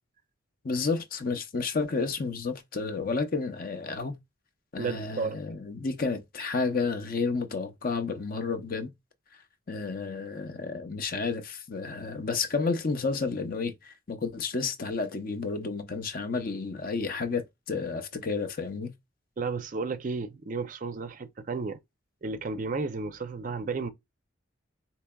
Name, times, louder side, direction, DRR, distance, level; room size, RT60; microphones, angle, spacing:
voice 1, 0.6-4.1 4.7-8.9 9.7-18.9, left 4 dB, 45° left, 0.6 m, -31 dB
voice 2, 4.8-5.4 19.4-21.8 22.2-23.9, right 4 dB, 40° right, 0.4 m, -33 dB
4.5 x 2.9 x 2.2 m
head